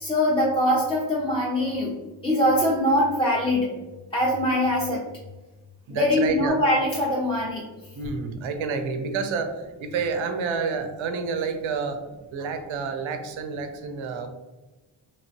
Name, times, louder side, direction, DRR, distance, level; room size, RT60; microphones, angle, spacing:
voice 1, 0.0-2.0 2.2-3.7 4.1-5.0 5.9-7.6, left 1 dB, 10° left, -5 dB, 0.5 m, -22 dB
voice 2, 5.9-6.6 7.9-12.0 12.3-14.3, right 5 dB, 90° right, 6 dB, 0.6 m, -29 dB
2.9 x 2.9 x 2.8 m, 1.2 s
cardioid pair, 95°, 46 cm